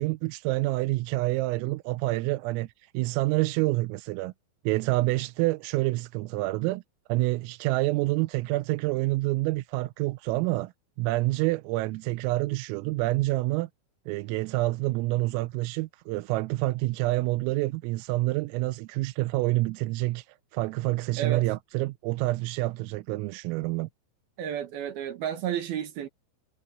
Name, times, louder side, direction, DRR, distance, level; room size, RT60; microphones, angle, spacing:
voice 1, 0.0-4.3 4.7-6.8 7.1-10.7 11.0-13.7 14.1-20.3 20.5-23.9, right 20 dB, 90° right, 3.4 m, -27 dB
voice 2, 24.4-26.1, right 9 dB, 60° right, 3.0 m, -32 dB
omnidirectional pair, 5.8 m